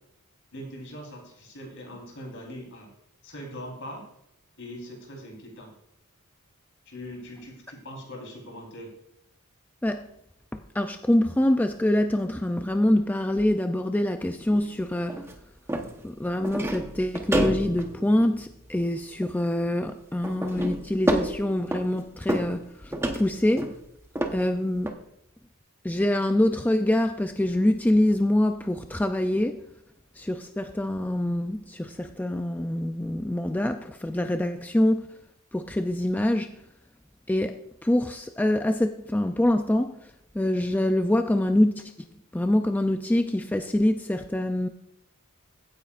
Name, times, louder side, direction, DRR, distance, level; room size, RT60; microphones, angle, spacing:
voice 1, 0.5-2.9 3.2-4.0 4.6-5.7 6.9-8.9, equal, 60° left, 0 dB, 4.0 m, -41 dB
voice 2, 10.5-15.3 16.0-23.7 24.3-25.0 25.8-29.6 30.2-35.1 35.5-36.5 37.3-40.0 40.3-41.8 42.3-44.7, left 1 dB, 10° left, 6 dB, 0.4 m, -25 dB
sound 1, 14.5-14.7 15.1-15.4 15.7-16.0 16.4-18.8 19.2-19.3 20.2-22.0 22.3-22.6 22.9-23.8 24.2-24.4 24.9-25.0, right 1 dB, 10° right, 1.0 m, -29 dB
16.0 x 9.3 x 2.5 m, 0.77 s
head